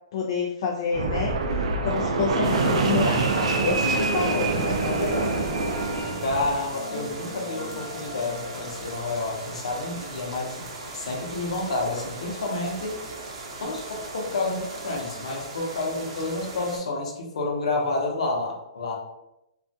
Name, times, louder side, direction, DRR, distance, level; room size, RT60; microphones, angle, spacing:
voice 1, 0.1-5.6, left 5 dB, 50° left, 0 dB, 0.3 m, -29 dB
Fixed-wing aircraft airplane, 0.9-6.6, right 3 dB, 90° right, 0.4 m, -25 dB
sound 1, 1.1-10.2, left 2 dB, 5° right, 0.6 m, -39 dB
sound 2, 2.4-16.8, right 2 dB, 65° right, 0.7 m, -39 dB
voice 2, 6.2-10.7 10.9-13.0 13.6-19.0, left 2 dB, 85° left, 0 dB, 0.8 m, -29 dB
2.4 x 2.2 x 2.6 m, 0.88 s
hypercardioid pair, 160°, 3 cm